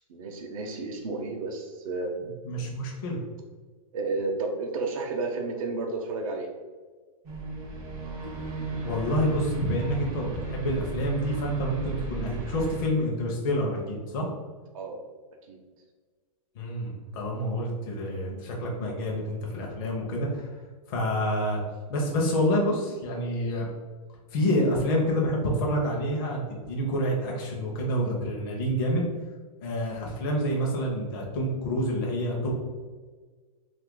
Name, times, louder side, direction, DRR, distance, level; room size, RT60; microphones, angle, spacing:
voice 1, 0.1-2.1 3.9-6.5 14.7-15.0 15.5-15.6, right 3 dB, 65° right, 1 dB, 0.6 m, -32 dB
voice 2, 2.4-3.2 8.7-14.3 16.5-20.5 20.9-21.6 21.9-23.7 24.3-29.0 29.6-32.5, equal, 40° left, -1 dB, 0.6 m, -28 dB
sound 1, 7.2-12.8, right 3 dB, 20° right, 0.4 m, -35 dB
2.6 x 2.4 x 3.7 m, 1.4 s
supercardioid pair, 165°, 18 cm